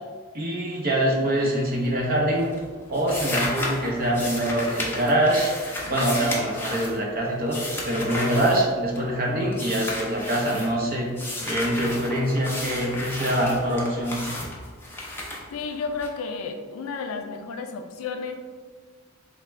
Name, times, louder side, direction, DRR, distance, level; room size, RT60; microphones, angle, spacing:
voice 1, 0.3-2.5 2.9-5.5 5.8-7.6 7.8-11.1 11.4-14.2, right 1 dB, 45° right, -2 dB, 0.7 m, -24 dB
sound 1, 1.7-2.1 2.4-9.2 9.5-10.7 11.1-16.1, left 1 dB, 10° left, 0.5 m, -33 dB
voice 2, 15.5-18.3, left 4 dB, 70° left, 5 dB, 0.3 m, -32 dB
3.4 x 2.1 x 3.1 m, 1.5 s
head